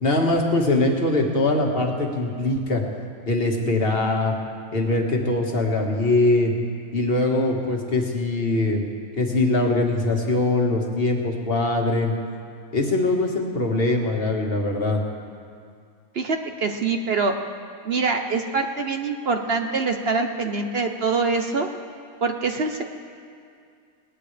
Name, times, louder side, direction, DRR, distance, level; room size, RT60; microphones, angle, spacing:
voice 1, 0.0-2.8 3.3-4.4 4.7-6.5 6.9-8.8 9.2-12.1 12.7-15.0, left 2 dB, 40° left, 0 dB, 1.8 m, -22 dB
voice 2, 16.1-17.3 17.8-21.7 22.2-22.8, right 4 dB, 50° right, 5 dB, 0.9 m, -24 dB
21.0 x 18.5 x 3.4 m, 2.3 s
omnidirectional pair, 1.6 m